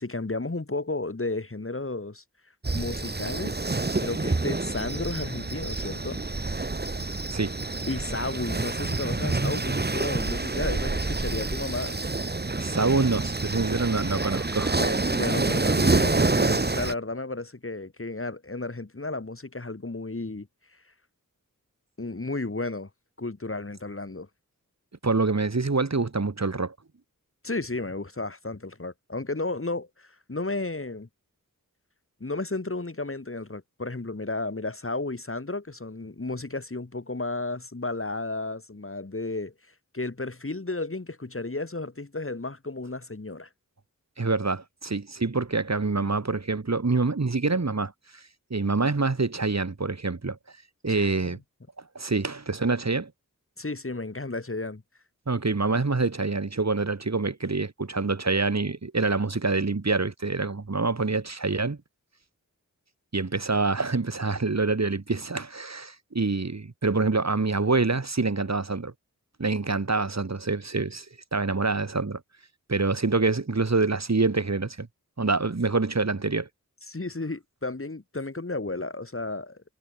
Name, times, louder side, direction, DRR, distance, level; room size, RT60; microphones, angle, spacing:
voice 1, 0.0-2.2 2.7-3.6 4.0-6.2 7.9-12.0 14.8-20.5 22.0-22.9 23.2-24.3 27.4-31.1 32.2-39.5 39.9-43.5 50.9-51.4 53.6-54.8 76.9-79.6, left 2 dB, 40° left, 6.2 m, -33 dB
sound 1, 2.6-16.9, right 3 dB, 30° right, 1.7 m, -27 dB
voice 2, 12.6-14.8 25.0-26.7 44.2-48.2 48.5-50.4 50.8-51.4 51.9-53.1 55.3-61.8 63.1-68.9 69.4-71.1 71.3-72.2 72.7-74.9 75.2-76.5, right 3 dB, 50° right, 4.3 m, -26 dB
wide cardioid pair, 60°, 34 cm